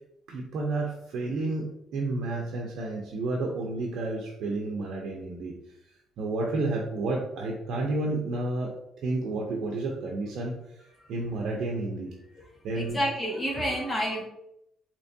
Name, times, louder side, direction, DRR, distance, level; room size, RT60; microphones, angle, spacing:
voice 1, 0.3-5.5 6.2-8.7 9.0-10.6 11.1-12.1 12.6-13.0, right 2 dB, 75° right, -1 dB, 0.7 m, -31 dB
voice 2, 12.7-14.2, equal, 20° left, -3 dB, 1.5 m, -29 dB
4.4 x 3.0 x 2.7 m, 0.80 s
cardioid pair, 90°, 0 cm